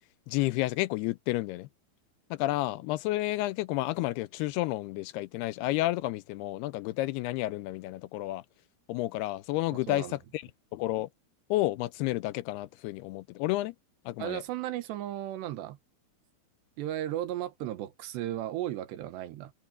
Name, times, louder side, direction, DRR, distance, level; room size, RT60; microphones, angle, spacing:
voice 1, 0.3-1.7 2.3-8.4 8.9-11.1 11.5-13.8 14.1-14.4, left 17 dB, 85° left, 2.5 m, -31 dB
voice 2, 14.2-15.8 16.8-19.5, right 13 dB, 90° right, 3.5 m, -35 dB
omnidirectional pair, 4.8 m